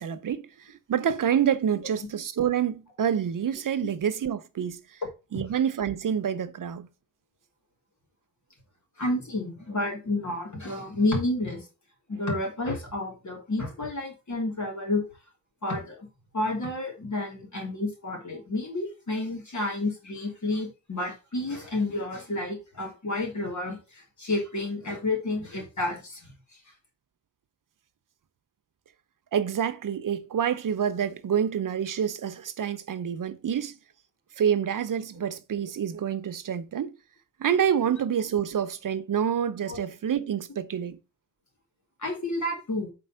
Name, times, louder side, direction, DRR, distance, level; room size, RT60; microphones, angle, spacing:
voice 1, 0.0-5.0 5.3-6.9 29.3-33.8 34.4-36.9 37.4-41.0, right 8 dB, 85° right, 0.7 m, -27 dB
voice 2, 9.0-11.7 12.1-15.0 15.6-16.1 16.3-26.3 39.7-39.8 42.0-42.9, left 2 dB, 65° left, 3.0 m, -30 dB
5.4 x 4.2 x 5.5 m
wide cardioid pair, 100°, 32 cm